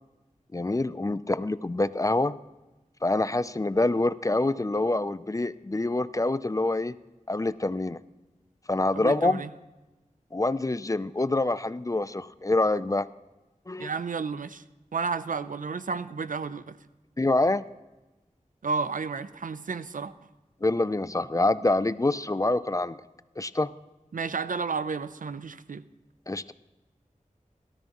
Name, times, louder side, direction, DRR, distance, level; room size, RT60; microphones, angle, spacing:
voice 1, 0.5-2.4 3.0-6.9 7.3-8.0 8.7-9.4 10.3-13.1 13.7-13.9 17.2-17.6 20.6-23.0 23.4-23.7 26.3-26.5, left 2 dB, 25° left, 0.4 m, -26 dB
voice 2, 9.0-9.5 13.8-14.6 14.9-16.8 18.6-20.1 24.1-25.8, right 5 dB, 85° right, 0.5 m, -32 dB
17.5 x 13.0 x 3.0 m
wide cardioid pair, 65°, 13 cm